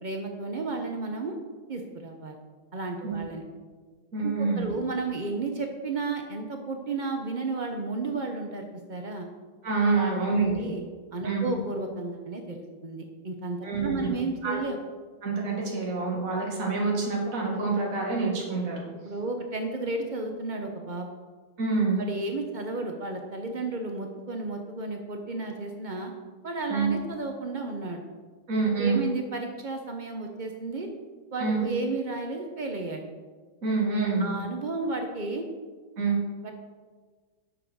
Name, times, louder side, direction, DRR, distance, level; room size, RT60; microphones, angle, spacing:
voice 1, 0.0-1.4 1.7-2.4 2.7-3.4 4.2-9.3 9.9-10.3 10.5-10.8 11.1-14.8 19.0-21.1 22.0-26.1 26.4-28.0 28.8-30.9 31.3-33.0 33.9-35.5 36.4-36.5, right 3 dB, 80° right, 3 dB, 0.4 m, -33 dB
voice 2, 4.1-4.7 9.6-10.7 11.2-11.5 13.6-14.1 14.4-14.6 15.2-18.8 21.6-22.0 26.7-26.9 28.5-29.0 31.4-31.6 33.6-34.4 36.0-36.2, right 4 dB, 40° right, -2 dB, 2.4 m, -26 dB
9.7 x 6.8 x 6.3 m, 1.5 s
omnidirectional pair, 2.3 m